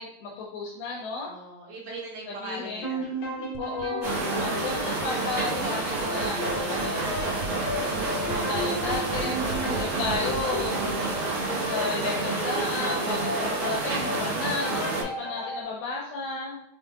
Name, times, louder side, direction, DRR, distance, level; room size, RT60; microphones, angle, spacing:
voice 1, 0.0-1.3 2.3-2.8 3.6-7.4 8.3-10.8 11.1-11.3 11.6-16.6, left 3 dB, 80° left, -2 dB, 2.5 m, -33 dB
voice 2, 1.3-3.2, right 2 dB, 70° right, -4 dB, 2.9 m, -41 dB
sound 1, 2.8-15.6, left 1 dB, 50° left, 2.4 m, -34 dB
sound 2, 3.5-12.2, right 4 dB, 90° right, 1.9 m, -41 dB
sound 3, 4.0-15.0, right 3 dB, 50° right, 2.4 m, -29 dB
6.0 x 3.7 x 2.4 m, 0.78 s
omnidirectional pair, 4.4 m